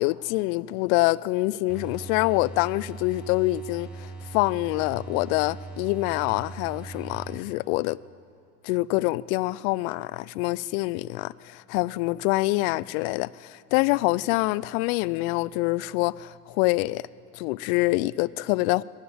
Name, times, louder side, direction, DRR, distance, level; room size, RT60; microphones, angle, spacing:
voice 1, 0.0-8.0 8.6-17.0 17.3-18.8, left 20 dB, 60° left, 0.6 m, -25 dB
sound 1, 1.7-7.8, right 4 dB, ahead, 6.6 m, -40 dB
21.0 x 15.0 x 8.7 m
hypercardioid pair, 80°, 47 cm